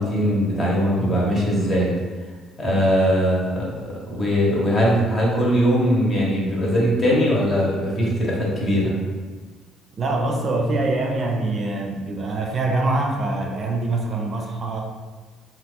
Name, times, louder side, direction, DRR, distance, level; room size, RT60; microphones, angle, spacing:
voice 1, 0.0-1.9 2.6-3.7 4.1-8.9, equal, 40° left, -4 dB, 1.0 m, -20 dB
voice 2, 10.0-14.8, right 2 dB, 45° right, 1 dB, 0.5 m, -24 dB
2.9 x 2.4 x 3.6 m, 1.4 s
supercardioid pair, 90°, 0 cm